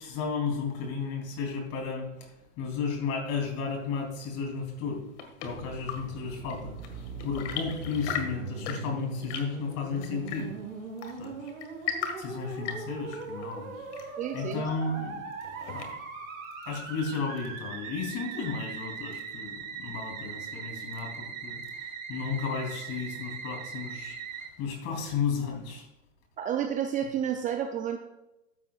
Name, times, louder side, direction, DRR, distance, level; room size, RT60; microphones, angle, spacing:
voice 1, 0.0-5.0 5.4-10.5 11.2-11.5 12.2-15.2 15.7-16.0 16.6-25.9, left 5 dB, 40° left, 3 dB, 3.3 m, -34 dB
Chirp tweet / Engine / Tap, 4.7-16.3, left 7 dB, 60° left, 2.0 m, -40 dB
Musical instrument, 5.4-24.5, right 5 dB, 85° right, 2.8 m, -40 dB
voice 2, 14.2-14.6 26.4-28.0, right 9 dB, 20° right, 5 dB, 0.5 m, -30 dB
14.0 x 8.9 x 2.4 m, 0.93 s
hypercardioid pair, 125°, 40 cm